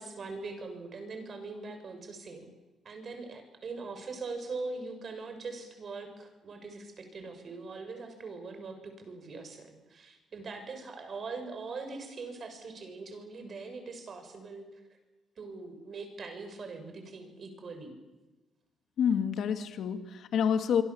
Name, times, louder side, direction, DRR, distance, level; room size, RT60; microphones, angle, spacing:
voice 1, 0.0-2.5 2.8-14.8 15.4-17.9, right 3 dB, 50° right, 7 dB, 6.4 m, -42 dB
voice 2, 19.0-20.8, left 7 dB, 70° left, 7 dB, 2.3 m, -28 dB
25.5 x 24.5 x 7.3 m, 1.1 s
cardioid pair, 90°, 0 cm